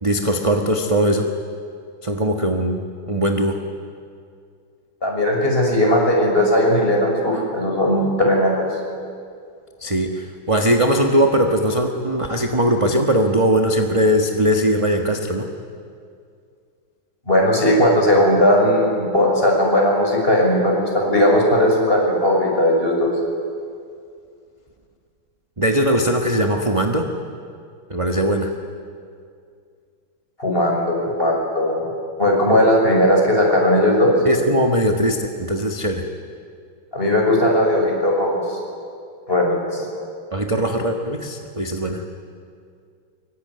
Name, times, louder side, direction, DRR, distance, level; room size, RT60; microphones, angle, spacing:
voice 1, 0.0-1.3 2.0-3.6 9.8-15.5 25.6-27.1 27.9-28.5 34.2-36.0 40.3-42.0, right 1 dB, 20° right, 3 dB, 1.1 m, -20 dB
voice 2, 5.0-8.7 17.3-23.1 30.4-31.8 32.2-34.1 36.9-38.6 39.3-39.8, left 1 dB, 25° left, -1 dB, 6.4 m, -17 dB
24.5 x 23.5 x 9.7 m, 2.3 s
omnidirectional pair, 2.4 m